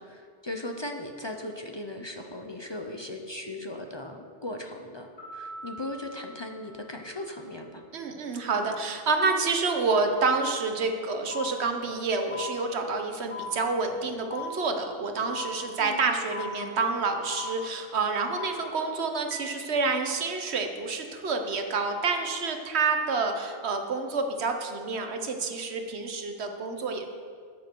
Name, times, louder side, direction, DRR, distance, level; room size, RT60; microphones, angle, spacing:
voice 1, 0.0-5.1 5.3-7.8 15.8-16.2, left 1 dB, 30° left, 3 dB, 0.6 m, -38 dB
sound 1, 5.2-7.7, right 2 dB, 65° left, 2.6 m, -45 dB
voice 2, 7.9-27.0, right 4 dB, 85° right, 5 dB, 1.3 m, -28 dB
sound 2, 11.3-11.5 12.3-12.5 13.3-13.5 14.3-14.5 15.3-15.5 16.3-16.5 17.3-17.5 18.3-18.5 19.3-19.5, left 7 dB, 10° left, 1.7 m, -36 dB
13.0 x 8.4 x 4.6 m, 2.1 s
omnidirectional pair, 1.1 m